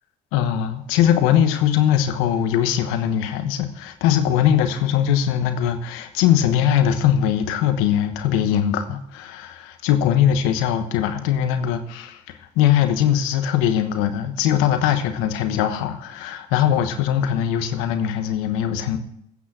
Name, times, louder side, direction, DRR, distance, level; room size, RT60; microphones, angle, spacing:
voice 1, 0.3-19.0, left 10 dB, 90° left, 1.1 m, -21 dB
15.5 x 6.1 x 7.4 m
hypercardioid pair, 50°, 21 cm